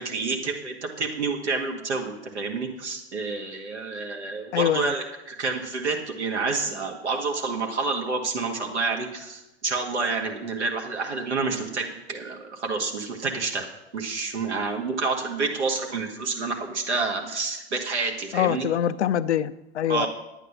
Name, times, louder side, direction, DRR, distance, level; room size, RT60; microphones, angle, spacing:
voice 1, 0.0-13.7 13.9-18.7 19.9-20.1, right 4 dB, 85° right, 1 dB, 1.9 m, -29 dB
voice 2, 4.5-4.9 18.3-20.1, left 10 dB, 80° left, 13 dB, 0.6 m, -24 dB
10.0 x 9.1 x 5.9 m, 0.96 s
hypercardioid pair, 90°, 33 cm